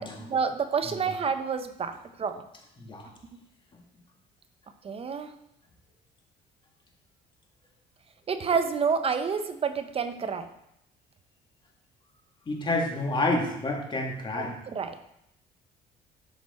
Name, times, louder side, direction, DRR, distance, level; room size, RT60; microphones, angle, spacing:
voice 1, 0.0-2.4 4.8-5.3 8.3-10.5 14.4-15.0, right 6 dB, 35° right, 9 dB, 0.6 m, -29 dB
voice 2, 12.5-14.5, left 2 dB, 30° left, 0 dB, 1.9 m, -28 dB
7.9 x 6.1 x 4.3 m, 0.79 s
cardioid pair, 110°, 17 cm